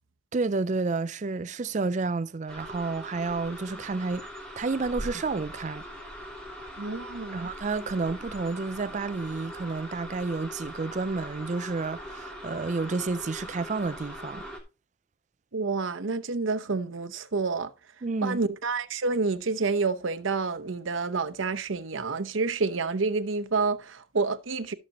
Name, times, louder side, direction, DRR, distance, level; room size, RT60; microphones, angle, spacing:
voice 1, 0.3-4.2 4.6-5.8 7.3-14.5 18.0-18.4, right 3 dB, 40° right, 0.4 m, -30 dB
sound 1, 2.5-14.6, equal, 5° left, 2.9 m, -41 dB
voice 2, 6.8-7.5 15.5-17.7 18.2-24.7, right 4 dB, 90° right, 0.8 m, -28 dB
14.0 x 6.6 x 2.9 m
head